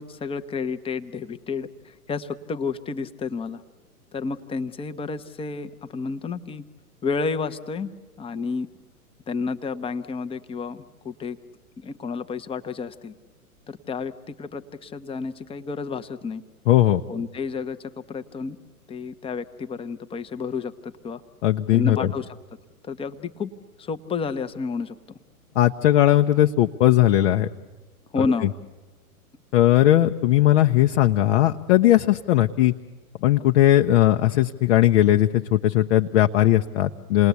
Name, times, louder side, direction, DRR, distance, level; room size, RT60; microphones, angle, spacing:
voice 1, 0.0-3.6 4.1-6.6 7.0-7.9 8.2-8.7 9.3-11.4 11.8-13.1 13.7-16.4 17.1-18.6 18.9-21.2 21.7-22.4 22.8-23.5 23.8-25.0 28.1-28.5, left 4 dB, 10° left, 9 dB, 0.9 m, -30 dB
voice 2, 16.7-17.0 21.4-22.1 25.5-27.5 29.5-32.7 33.2-37.3, left 13 dB, 50° left, 5 dB, 0.9 m, -18 dB
28.5 x 19.5 x 8.3 m, 1.2 s
figure-of-eight pair, 110°, 45 cm